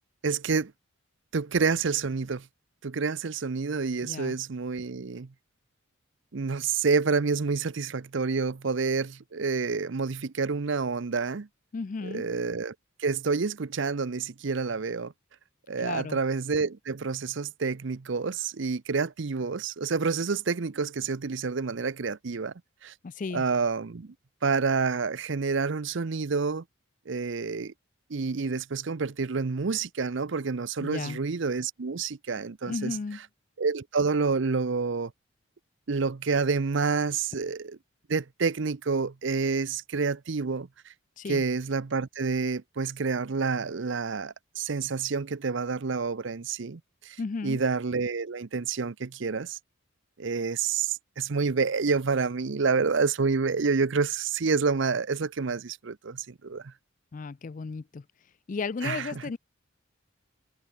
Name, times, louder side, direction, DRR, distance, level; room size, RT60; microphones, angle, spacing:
voice 1, 0.2-0.7 1.3-2.5 2.8-5.3 6.3-11.5 12.0-15.1 15.7-22.5 22.8-22.9 23.3-24.1 24.4-26.6 27.1-27.7 28.1-33.0 33.6-35.1 35.9-37.8 38.1-40.7 41.3-47.2 47.4-49.6 50.2-56.7 58.8-59.2, right 4 dB, 55° right, 0.6 m, -28 dB
voice 2, 4.0-4.4 11.7-12.2 15.8-16.2 23.0-23.4 30.8-31.2 32.6-33.2 41.2-41.4 47.2-47.6 57.1-58.0 58.5-59.4, left 4 dB, 35° left, 0.4 m, -34 dB
head